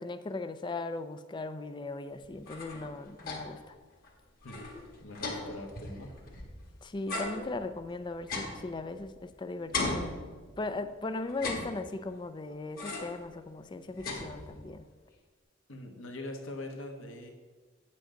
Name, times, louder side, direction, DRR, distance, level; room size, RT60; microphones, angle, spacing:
voice 1, 0.0-3.8 6.8-10.1 10.6-14.8, left 2 dB, 25° left, 11 dB, 0.4 m, -38 dB
sound 1, 2.2-3.7 4.0-4.1 4.4-6.6 7.1-9.3 9.7-10.8 11.3-12.2 12.8-13.3 13.6-14.8, left 2 dB, 50° left, 1.5 m, -38 dB
voice 2, 5.0-6.1 15.7-17.3, left 1 dB, 80° left, 2 dB, 1.4 m, -42 dB
9.0 x 7.6 x 3.8 m, 1.4 s
head